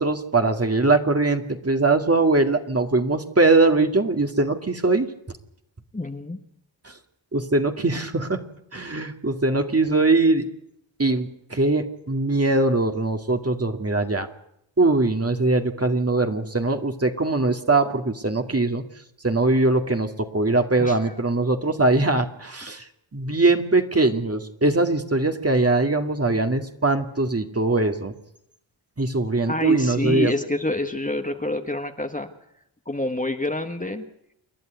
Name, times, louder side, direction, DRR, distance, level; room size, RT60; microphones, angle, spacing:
voice 1, 0.0-5.1 6.8-6.9 7.3-8.4 8.7-10.5 11.0-14.3 14.8-18.8 19.2-28.1 29.0-30.3, right 2 dB, 30° right, 5 dB, 2.2 m, -21 dB
voice 2, 5.9-6.4 20.8-21.1 29.5-32.3 32.8-34.0, left 2 dB, 15° left, 6 dB, 1.5 m, -27 dB
28.5 x 11.0 x 9.3 m, 0.79 s
cardioid pair, 50°, 47 cm